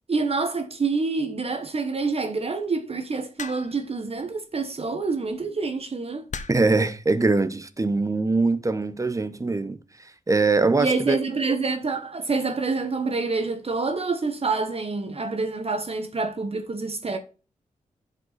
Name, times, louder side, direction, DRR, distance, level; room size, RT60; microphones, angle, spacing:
voice 1, 0.1-6.2 10.8-17.2, right 4 dB, 50° right, 1.2 m, -27 dB
sound 1, 3.4-3.9 5.1-5.4 6.3-6.8 7.8-8.1, left 5 dB, 65° left, 1.1 m, -37 dB
voice 2, 6.5-9.8 10.3-11.2, right 3 dB, 25° right, 0.9 m, -22 dB
10.5 x 5.4 x 4.1 m
cardioid pair, 75°, 13 cm